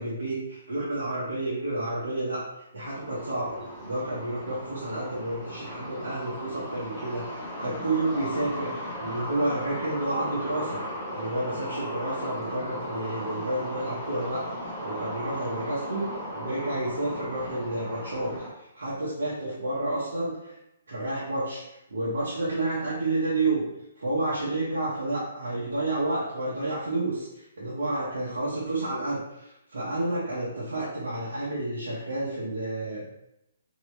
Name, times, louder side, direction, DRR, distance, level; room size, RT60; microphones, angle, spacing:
voice 1, 0.0-10.8 11.1-20.5 20.9-21.6 21.9-23.6 24.0-33.0, right 2 dB, 80° right, -8 dB, 1.0 m, -30 dB
sound 1, 2.8-18.5, equal, 5° left, 1.3 m, -37 dB
2.9 x 2.9 x 3.2 m, 0.86 s
hypercardioid pair, 145°, 0 cm